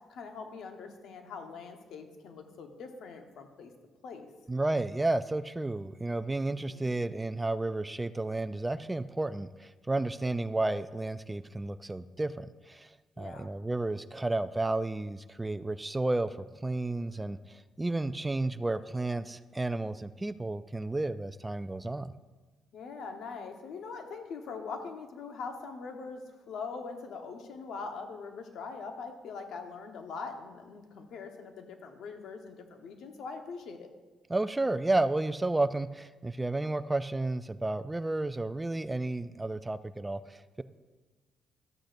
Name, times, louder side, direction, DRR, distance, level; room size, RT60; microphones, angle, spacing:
voice 1, 0.1-3.7 4.0-4.3 6.5-6.9 13.2-13.5 22.7-26.2 26.5-33.9, left 4 dB, 75° left, 5 dB, 1.1 m, -42 dB
voice 2, 4.5-12.9 13.2-16.4 16.6-22.1 34.3-40.6, right 2 dB, 15° right, 13 dB, 0.3 m, -32 dB
13.0 x 8.9 x 2.6 m, 1.3 s
cardioid pair, 90°, 0 cm